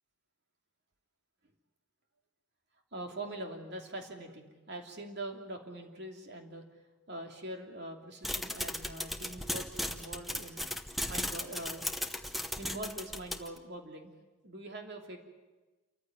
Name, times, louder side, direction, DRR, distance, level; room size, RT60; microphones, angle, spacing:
voice 1, 2.9-6.7 7.1-10.7 11.1-11.9 12.6-14.1 14.4-15.2, right 1 dB, 50° right, 2 dB, 2.9 m, -43 dB
sound 1, 8.2-13.6, left 1 dB, ahead, 0.9 m, -36 dB
28.0 x 15.0 x 9.2 m, 1.2 s
head